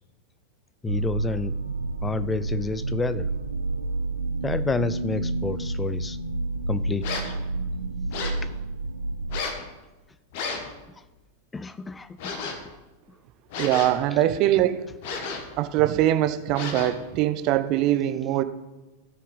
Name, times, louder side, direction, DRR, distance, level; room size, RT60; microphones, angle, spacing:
voice 1, 0.8-1.5 2.0-3.3 4.4-6.2 6.7-7.1 8.4-8.5 11.0-11.1 11.5-12.7, left 4 dB, 15° left, 15 dB, 0.4 m, -30 dB
sound 1, 0.9-9.4, right 2 dB, 75° right, 0.5 m, -29 dB
sound 2, 7.0-7.4 8.1-8.5 9.3-9.7 10.3-10.7 12.2-12.7 13.5-14.1 15.0-15.6 16.5-17.1, left 4 dB, 50° left, 1.6 m, -33 dB
voice 2, 13.6-14.9 15.6-18.4, right 13 dB, 40° right, 12 dB, 0.7 m, -22 dB
17.0 x 6.3 x 4.0 m, 1.1 s
figure-of-eight pair, 90°, 0 cm